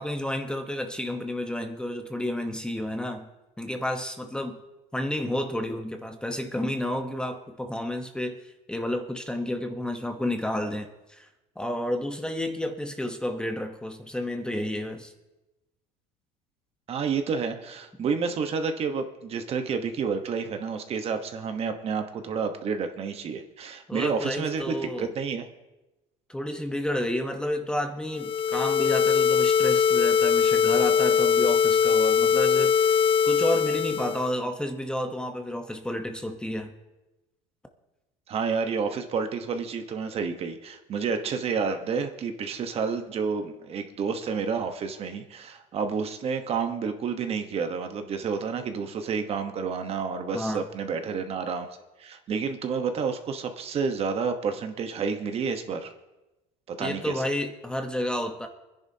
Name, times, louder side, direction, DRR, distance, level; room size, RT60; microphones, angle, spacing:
voice 1, 0.0-3.3 3.6-4.6 4.9-8.4 8.7-11.3 11.6-15.1 23.9-25.1 26.3-32.9 33.2-36.7 50.3-50.6 56.8-58.5, left 1 dB, 5° left, 5 dB, 1.0 m, -31 dB
voice 2, 16.9-25.4 38.3-51.7 52.0-55.9 56.7-57.2, right 5 dB, 40° right, 7 dB, 1.1 m, -30 dB
sound 1, 28.2-34.3, left 7 dB, 35° left, 0.4 m, -22 dB
26.5 x 10.5 x 2.8 m, 1.0 s
cardioid pair, 135°, 16 cm